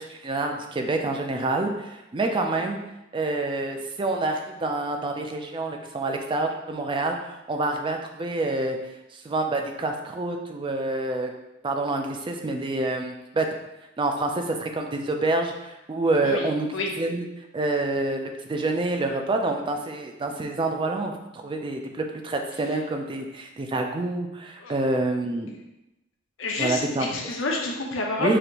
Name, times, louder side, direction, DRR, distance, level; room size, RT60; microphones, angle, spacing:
voice 1, 0.0-2.8 3.1-8.8 9.1-11.3 11.6-13.5 14.0-16.7 17.0-17.3 17.5-25.5 26.6-27.1 28.2-28.4, right 2 dB, 25° right, 3 dB, 0.4 m, -27 dB
voice 2, 2.2-2.6 16.2-16.9 24.6-24.7 26.4-28.4, left 2 dB, 75° left, 0 dB, 0.7 m, -29 dB
5.0 x 2.5 x 2.9 m, 0.94 s
head